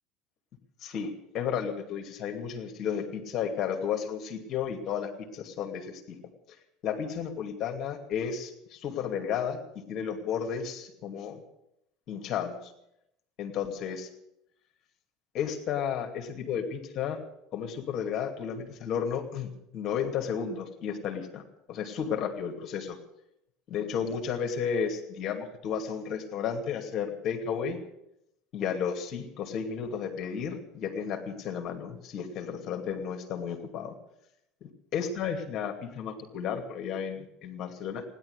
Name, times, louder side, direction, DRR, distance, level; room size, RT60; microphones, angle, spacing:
voice 1, 0.8-6.2 6.8-11.4 12.1-12.7 13.4-14.1 15.3-17.2 17.5-23.0 23.7-27.8 28.5-33.9 34.6-38.1, left 7 dB, 50° left, 4 dB, 2.5 m, -33 dB
16.5 x 11.0 x 8.1 m, 0.81 s
hypercardioid pair, 80°, 0 cm